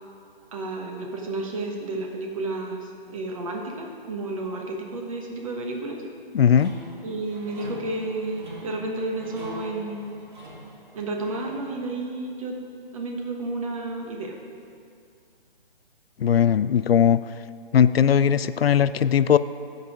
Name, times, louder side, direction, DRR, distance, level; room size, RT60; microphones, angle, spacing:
voice 1, 0.5-6.0 7.0-10.0 10.9-12.6 12.9-14.4, right 2 dB, 35° right, 1 dB, 1.2 m, -31 dB
voice 2, 6.3-6.7 16.2-17.2 17.7-19.4, left 8 dB, 75° left, 15 dB, 0.4 m, -19 dB
sound 1, 6.5-11.8, right 1 dB, 50° right, 1.9 m, -43 dB
15.0 x 5.5 x 4.9 m, 2.4 s
figure-of-eight pair, 150°, 30 cm